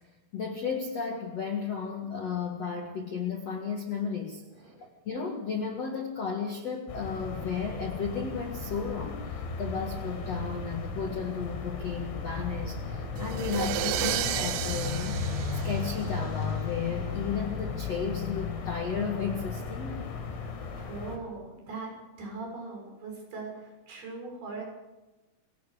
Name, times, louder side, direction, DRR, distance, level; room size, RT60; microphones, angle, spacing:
voice 1, 0.3-4.4 5.0-20.1, left 6 dB, 60° left, 2 dB, 1.6 m, -34 dB
sound 1, 6.9-21.2, left 4 dB, 80° left, 5.9 m, -35 dB
sound 2, 13.2-16.4, right 12 dB, 80° right, 2.6 m, -33 dB
voice 2, 20.8-24.6, right 3 dB, 50° right, 1 dB, 8.2 m, -40 dB
28.5 x 18.0 x 5.0 m, 1.1 s
omnidirectional pair, 5.9 m